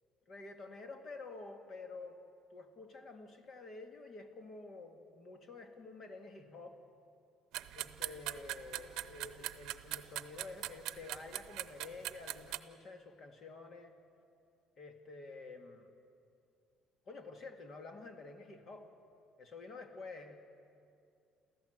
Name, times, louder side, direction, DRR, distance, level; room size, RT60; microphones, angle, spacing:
voice 1, 0.3-2.2 2.5-6.7 7.7-13.9 14.8-15.9 17.1-18.9 19.4-20.4, left 3 dB, 45° left, 5 dB, 2.1 m, -49 dB
sound 1, 7.5-12.6, right 15 dB, 80° right, 0.7 m, -42 dB
28.0 x 14.5 x 8.0 m, 2.5 s
cardioid pair, 135°, 0 cm